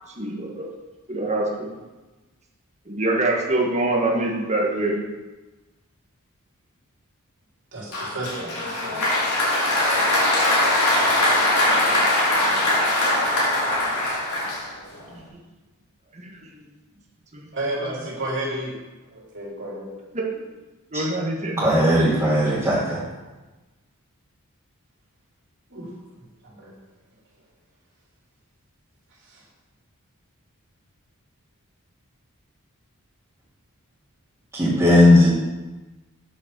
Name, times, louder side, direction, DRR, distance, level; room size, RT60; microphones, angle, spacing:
voice 1, 0.1-0.7 1.1-1.7 2.8-5.0 11.7-12.8 13.0-13.1 15.1-15.4 16.1-16.6 17.3-17.5 17.8-18.0 20.1-20.4 20.9-21.7, right 2 dB, 30° right, -2 dB, 1.7 m, -26 dB
voice 2, 7.7-9.2 9.5-10.0 17.5-18.8 19.1-19.9 25.7-25.9 26.4-26.7 29.2-29.4, right 1 dB, 55° right, -4 dB, 3.7 m, -32 dB
Applause, 7.9-15.0, left 1 dB, 85° left, 3.7 m, -21 dB
voice 3, 21.6-23.0 34.5-35.3, left 1 dB, 15° right, -10 dB, 2.6 m, -17 dB
8.3 x 6.5 x 6.7 m, 1.2 s
head